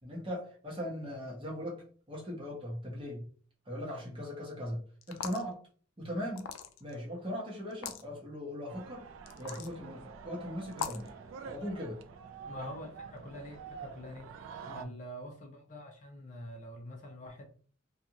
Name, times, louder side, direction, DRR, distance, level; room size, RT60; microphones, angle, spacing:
voice 1, 0.0-3.2 3.7-4.8 5.1-5.6 6.0-6.5 6.8-9.1 9.4-11.1 11.4-12.0 12.6-12.7 14.7-14.9, equal, 25° right, 1.0 m, -39 dB
sound 1, 5.0-5.5 6.4-6.9 7.7-8.0 9.3-9.7 10.7-11.1, left 7 dB, 90° left, 0.4 m, -39 dB
sound 2, 8.7-14.9, right 6 dB, 75° right, 0.3 m, -47 dB
voice 2, 12.5-14.3 14.7-17.4, equal, 35° left, 0.6 m, -45 dB
2.5 x 2.4 x 2.8 m
head